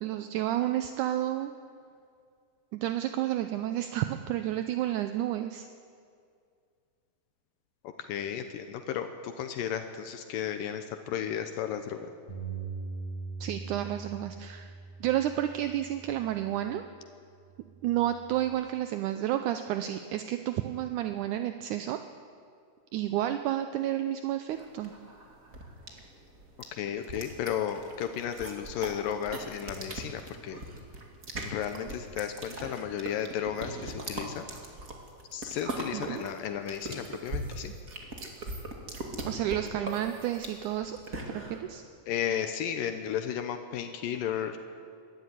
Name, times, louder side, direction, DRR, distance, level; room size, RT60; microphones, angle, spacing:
voice 1, 0.0-1.5 2.7-5.7 13.4-14.7 15.0-16.8 17.8-22.0 22.9-24.9 35.9-36.2 39.3-41.0 41.3-41.8, right 12 dB, 75° right, 8 dB, 2.0 m, -31 dB
voice 2, 8.0-12.1 26.7-30.6 31.4-34.5 35.3-37.7 42.1-44.6, left 9 dB, 80° left, 7 dB, 2.6 m, -34 dB
Bass guitar, 12.3-16.7 17.4-18.5, right 4 dB, 45° left, 5.5 m, -42 dB
sound 1, 24.6-41.6, right 2 dB, 30° right, 2.1 m, -40 dB
23.0 x 13.5 x 9.4 m, 2.3 s
omnidirectional pair, 4.0 m